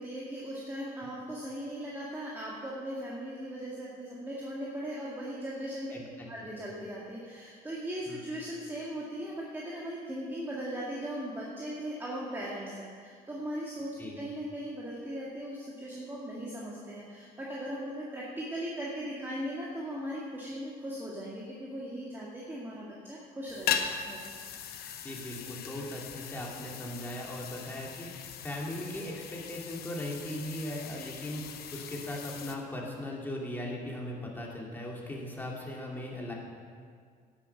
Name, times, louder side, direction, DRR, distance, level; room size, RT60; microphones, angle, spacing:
voice 1, 0.0-5.9 6.3-24.2, equal, 15° right, -5 dB, 1.9 m, -38 dB
voice 2, 5.9-6.5 8.1-8.2 14.0-14.2 25.0-36.3, left 1 dB, 10° left, -2 dB, 2.4 m, -39 dB
sound 1, 23.5-32.6, left 8 dB, 65° left, 0.9 m, -39 dB
10.5 x 8.9 x 5.8 m, 2.1 s
cardioid pair, 110°, 17 cm